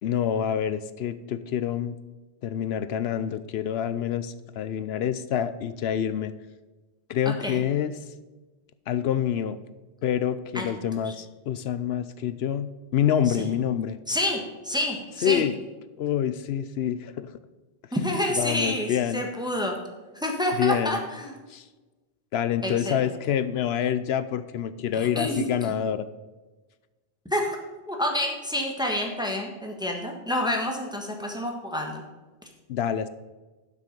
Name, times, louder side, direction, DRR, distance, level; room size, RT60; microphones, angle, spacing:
voice 1, 0.0-2.0 2.4-6.3 7.1-7.9 8.9-9.6 10.0-14.0 15.2-15.6 16.0-17.3 18.3-19.2 20.6-21.0 21.5-21.6 22.3-26.1 32.7-33.1, left 9 dB, 70° left, 13 dB, 0.8 m, -27 dB
voice 2, 7.2-7.6 10.5-10.7 11.0-11.1 13.3-13.5 14.1-15.4 17.9-19.8 20.1-21.3 22.6-23.0 24.9-25.5 27.2-27.6 27.9-32.0, left 1 dB, 5° right, 1 dB, 1.3 m, -28 dB
11.5 x 6.2 x 5.3 m, 1.2 s
omnidirectional pair, 1.1 m